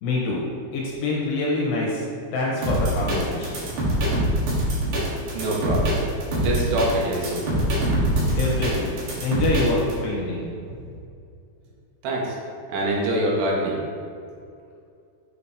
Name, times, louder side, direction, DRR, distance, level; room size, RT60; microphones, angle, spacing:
voice 1, 0.0-0.4 0.7-2.1 2.3-4.1 8.3-11.0, left 2 dB, 70° left, -4 dB, 2.7 m, -26 dB
sound 1, 2.6-9.9, equal, 60° right, 2.7 m, -24 dB
voice 2, 5.3-6.0 6.4-7.5 12.0-12.4 12.7-13.8, right 1 dB, 85° right, -3 dB, 3.3 m, -24 dB
6.9 x 6.5 x 2.8 m, 2.4 s
omnidirectional pair, 4.8 m